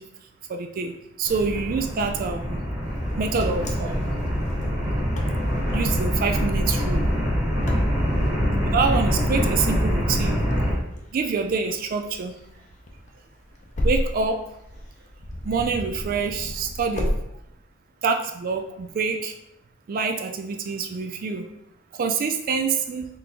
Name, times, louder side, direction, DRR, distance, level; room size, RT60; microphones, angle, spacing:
voice 1, 0.5-0.9 1.2-2.6 3.2-4.1 5.7-7.0 8.7-10.4 11.1-12.3 13.8-14.4 15.4-17.1 18.0-19.3 19.9-21.5 22.0-23.1, right 5 dB, 45° right, 6 dB, 0.3 m, -26 dB
sound 1, 1.2-10.7, equal, 20° right, 1.4 m, -24 dB
Wind, 3.0-17.2, equal, 40° left, 0.6 m, -34 dB
3.9 x 3.6 x 2.8 m, 0.81 s
head